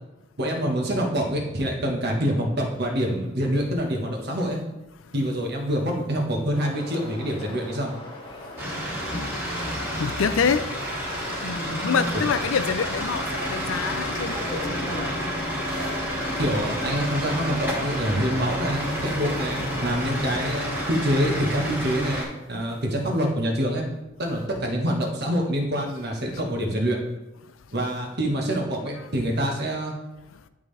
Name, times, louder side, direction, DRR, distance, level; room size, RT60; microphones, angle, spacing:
voice 1, 0.4-4.6 5.1-7.9 16.4-23.9 24.2-27.0 27.7-29.9, equal, 55° right, 1 dB, 1.3 m, -26 dB
sound 1, 6.5-21.8, left 1 dB, 25° left, 1.2 m, -41 dB
sound 2, 8.6-22.2, equal, 10° right, 2.1 m, -29 dB
voice 2, 9.1-10.8 11.4-15.1 30.3-30.4, left 6 dB, 80° left, 11 dB, 0.5 m, -27 dB
11.0 x 3.7 x 3.3 m, 1.0 s
head